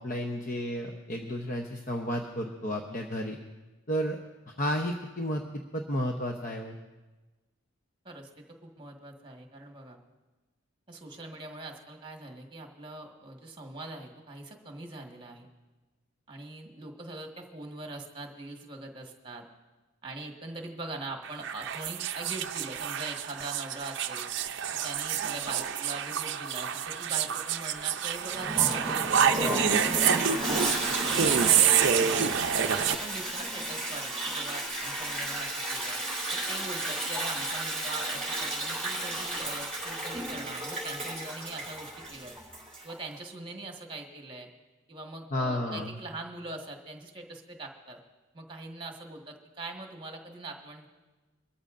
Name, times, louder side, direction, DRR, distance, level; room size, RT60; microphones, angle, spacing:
voice 1, 0.0-3.4 3.9-4.2 4.5-5.4 5.7-6.8 45.3-45.9, equal, 40° left, 2 dB, 0.8 m, -32 dB
voice 2, 8.0-10.0 10.9-15.5 16.3-19.5 20.0-24.3 24.8-30.8 31.1-32.3 32.6-36.0 36.3-42.3 42.8-44.5 44.9-48.0 48.3-50.9, right 2 dB, 20° right, 2 dB, 1.5 m, -42 dB
sound 1, 21.2-33.0, right 8 dB, 55° right, 0.5 m, -27 dB
Toilet flush, 28.3-43.0, right 1 dB, 5° left, 3.7 m, -33 dB
23.0 x 13.5 x 2.6 m, 1.2 s
head